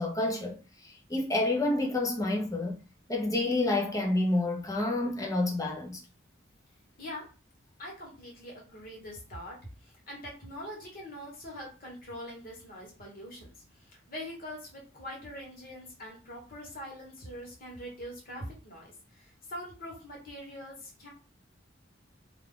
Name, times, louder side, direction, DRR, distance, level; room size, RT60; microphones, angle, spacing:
voice 1, 0.0-2.8 3.1-6.0, left 2 dB, 15° left, 0.6 m, -29 dB
voice 2, 7.8-9.5 9.8-21.1, equal, 45° left, 1.2 m, -43 dB
2.4 x 2.3 x 3.6 m
head